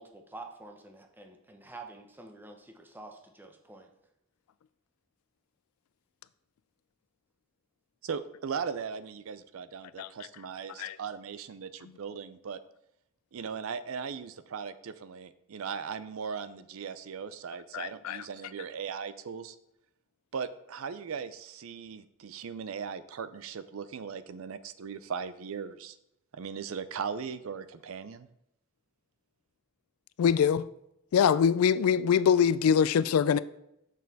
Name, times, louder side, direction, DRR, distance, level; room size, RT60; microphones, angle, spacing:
voice 1, 0.0-3.9, right 2 dB, 10° right, 0.7 m, -48 dB
voice 2, 8.0-12.6 13.3-19.6 20.3-26.0 26.3-28.3, right 6 dB, 75° right, 0.4 m, -38 dB
voice 3, 17.7-18.2 30.2-30.7 31.1-33.4, left 7 dB, 85° left, 0.3 m, -23 dB
6.5 x 6.3 x 4.1 m
head